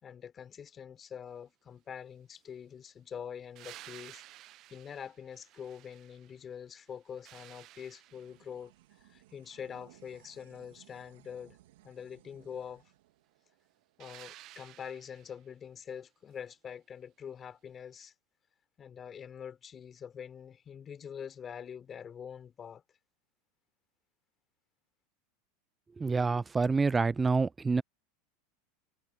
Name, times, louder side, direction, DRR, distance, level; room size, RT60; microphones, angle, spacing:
voice 1, 0.0-4.2 4.7-8.7 9.0-11.6 11.8-12.9 14.0-18.1 18.8-22.8, left 8 dB, 30° left, 3.6 m, -45 dB
sound 1, 3.6-6.5 6.9-8.6 14.0-15.4 18.0-18.1, right 15 dB, 50° right, 0.8 m, -53 dB
sound 2, 8.1-14.8, right 16 dB, 80° right, 2.4 m, -62 dB
voice 2, 26.0-27.8, right 4 dB, 15° right, 0.4 m, -27 dB
hypercardioid pair, 110°, 0 cm